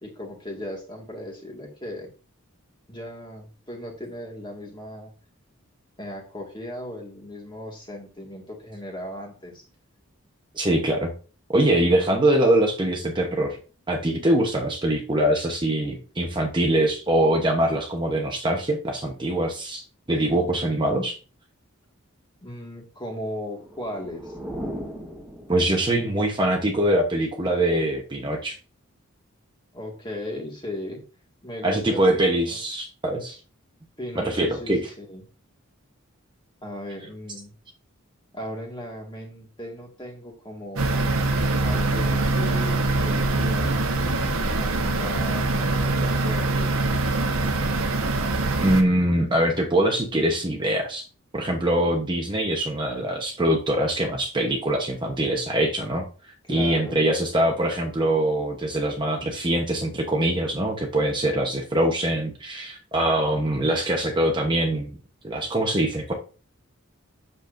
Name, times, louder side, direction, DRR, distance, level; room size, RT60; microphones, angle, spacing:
voice 1, 0.0-2.1 2.9-5.1 6.0-9.6 22.4-24.4 29.7-31.0 31.4-32.6 34.0-35.2 36.6-37.5 38.3-40.9 41.6-43.9 44.5-46.8 56.4-57.0, left 1 dB, 20° left, 0 dB, 1.8 m, -37 dB
voice 2, 10.5-11.1 11.5-13.6 13.9-19.8 20.1-21.1 25.5-28.6 31.6-33.4 34.2-34.8 48.6-51.0 51.3-56.1 56.5-65.0 65.2-66.1, right 1 dB, 20° right, 1 dB, 0.9 m, -23 dB
sound 1, 23.5-26.1, equal, 5° right, 1.2 m, -37 dB
sound 2, 40.8-48.8, right 2 dB, 85° right, 1.2 m, -23 dB
8.1 x 6.8 x 2.6 m, 0.35 s
head